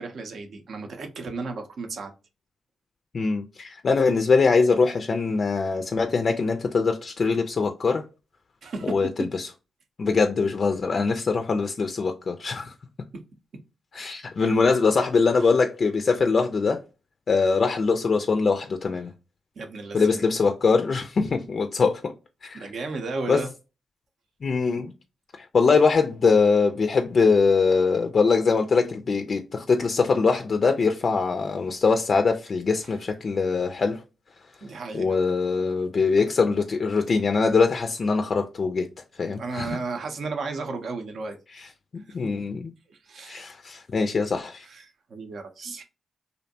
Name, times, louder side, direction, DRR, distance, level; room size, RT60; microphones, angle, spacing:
voice 1, 0.0-2.1 8.6-9.3 13.1-13.2 19.6-20.2 22.5-23.5 34.6-35.2 39.4-41.4 42.1-42.3 43.0-43.4 44.6-45.8, right 3 dB, 70° right, 0.5 m, -34 dB
voice 2, 3.1-8.0 8.8-9.5 10.0-12.7 13.9-16.8 17.3-19.1 19.9-22.1 22.4-22.7 23.3-23.4 24.4-24.9 25.4-34.0 34.9-38.9 39.2-39.8 41.5-41.7 41.9-42.7 43.2-44.7, left 4 dB, 55° left, 0.3 m, -22 dB
2.5 x 2.1 x 2.6 m
supercardioid pair, 45°, 0 cm